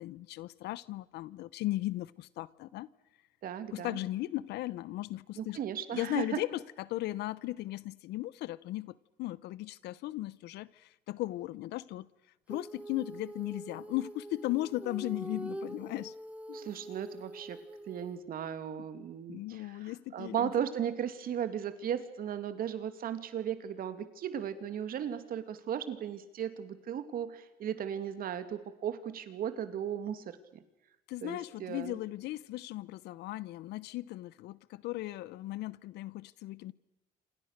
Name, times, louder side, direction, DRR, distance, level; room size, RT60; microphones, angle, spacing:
voice 1, 0.0-2.9 3.7-5.6 5.9-12.1 12.5-16.1 16.5-16.7 18.8-18.9 19.3-20.6 31.1-36.7, left 16 dB, 80° left, 0.9 m, -37 dB
voice 2, 3.4-4.0 5.4-6.4 16.5-17.6 17.9-30.6 31.2-32.0, right 9 dB, 60° right, 2.6 m, -36 dB
Female singing, 12.5-18.2, right 1 dB, 10° right, 1.7 m, -45 dB
27.5 x 27.0 x 6.7 m
cardioid pair, 110°, 17 cm